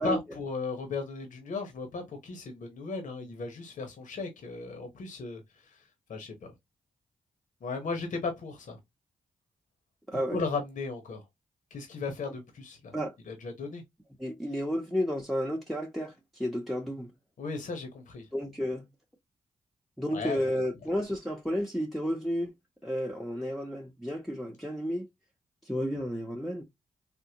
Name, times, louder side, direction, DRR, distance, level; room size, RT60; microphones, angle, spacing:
voice 1, 0.0-5.4 5.7-5.8 6.1-6.5 7.6-8.8 10.3-11.2 11.7-12.9 13.3-13.8 17.4-18.3 20.1-20.4, left 4 dB, 70° left, 0.9 m, -36 dB
voice 2, 10.1-10.4 12.9-13.2 14.2-17.1 18.3-18.9 20.0-22.5 22.8-25.1 25.6-26.6, equal, ahead, 0.8 m, -32 dB
3.6 x 2.1 x 2.8 m
cardioid pair, 55°, 14 cm